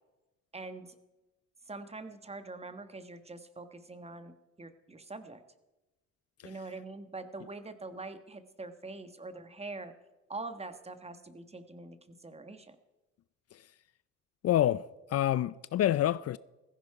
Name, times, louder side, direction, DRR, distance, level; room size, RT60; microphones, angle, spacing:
voice 1, 0.5-1.0 1.7-5.4 6.4-9.9 10.3-12.8, right 3 dB, 20° right, 1.3 m, -44 dB
voice 2, 14.4-14.9 15.1-16.4, left 12 dB, 55° left, 0.4 m, -27 dB
15.5 x 15.0 x 4.8 m
cardioid pair, 90°, 30 cm